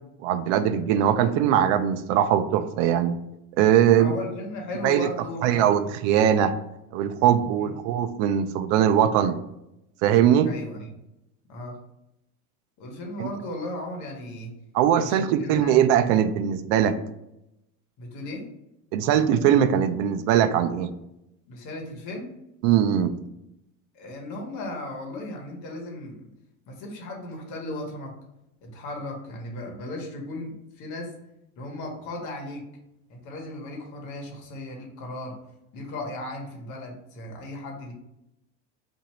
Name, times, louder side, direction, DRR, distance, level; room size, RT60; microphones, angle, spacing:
voice 1, 0.2-3.2 3.6-4.1 4.8-5.1 5.4-6.5 6.9-9.4 10.0-10.5 13.2-13.3 14.7-17.0 18.9-20.9 22.6-23.1, right 9 dB, 75° right, 11 dB, 0.5 m, -21 dB
voice 2, 3.9-5.7 7.6-7.7 10.4-10.9 11.5-11.8 12.8-14.5 14.9-15.7 18.0-18.4 21.5-22.3 23.9-26.3 26.7-28.1 28.6-31.1 31.6-32.6 33.1-35.4 35.7-37.9, left 1 dB, 55° left, 1 dB, 1.1 m, -36 dB
2.9 x 2.6 x 4.2 m, 0.86 s
cardioid pair, 150°, 37 cm